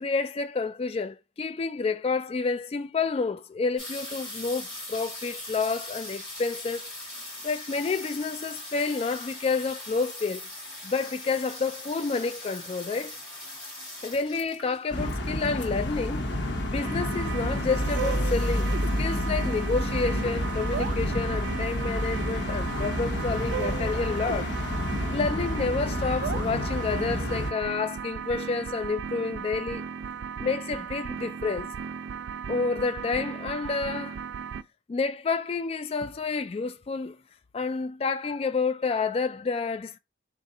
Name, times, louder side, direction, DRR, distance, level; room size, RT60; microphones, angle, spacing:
voice 1, 0.0-6.9 7.4-10.4 10.8-13.2 14.0-18.7 19.0-24.5 25.1-29.9 30.4-31.7 32.5-34.2 34.9-37.2 37.5-40.0, left 4 dB, 35° left, 0.3 m, -29 dB
sound 1, 3.8-16.3 17.1-17.2 17.4-17.8 18.1-18.7 19.2-19.3 19.5-19.6, left 1 dB, 5° left, 2.5 m, -41 dB
sound 2, 14.9-27.5, left 1 dB, 75° left, 0.9 m, -29 dB
sound 3, 16.8-34.6, right 6 dB, 75° right, 0.3 m, -36 dB
3.7 x 2.5 x 4.0 m
head